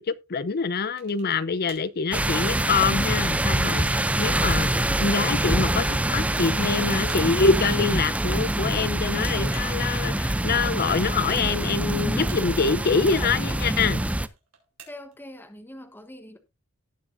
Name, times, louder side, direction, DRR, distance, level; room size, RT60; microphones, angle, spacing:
voice 1, 0.0-14.0, left 4 dB, 45° left, 0.6 m, -25 dB
sound 1, 1.0-1.4 1.7-2.0 2.6-3.4 3.9-4.1 6.2-6.8 7.1-7.4 8.8-9.9 11.3-11.8 12.3-12.8 14.2-15.2, right 7 dB, 75° right, 4.2 m, -50 dB
sound 2, 2.1-14.3, right 1 dB, 5° right, 0.5 m, -25 dB
voice 2, 14.9-16.4, left 1 dB, 10° left, 1.0 m, -43 dB
18.0 x 6.3 x 2.6 m
head